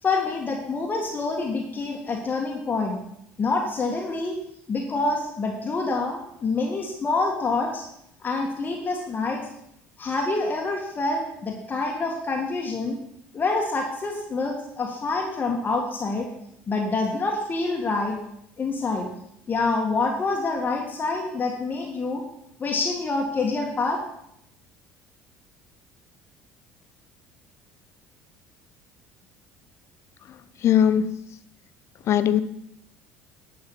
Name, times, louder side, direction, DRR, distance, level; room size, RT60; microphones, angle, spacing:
voice 1, 0.0-3.0 3.4-4.3 4.7-7.8 8.2-9.5 10.0-13.0 13.3-16.3 16.7-18.2 18.6-19.1 19.5-22.2 22.6-24.0, left 3 dB, 30° left, 1 dB, 1.8 m, -26 dB
voice 2, 30.6-31.1 32.1-32.4, left 9 dB, 50° left, 13 dB, 0.8 m, -19 dB
10.5 x 5.7 x 7.3 m, 0.78 s
hypercardioid pair, 65°, 6 cm